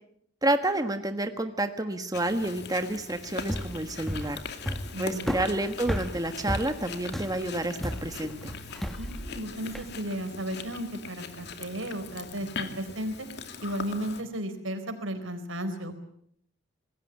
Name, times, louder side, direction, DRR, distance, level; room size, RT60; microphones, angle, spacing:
voice 1, 0.4-4.4 5.0-8.5, right 1 dB, 20° right, 7 dB, 1.4 m, -29 dB
Chewing mastication, 2.1-14.2, left 4 dB, 60° left, 2.6 m, -41 dB
sound 1, 3.4-9.9, equal, ahead, 1.3 m, -34 dB
voice 2, 4.9-5.3 8.9-13.3 13.6-16.0, equal, 85° right, 9 dB, 4.3 m, -34 dB
26.5 x 20.5 x 8.3 m, 0.69 s
head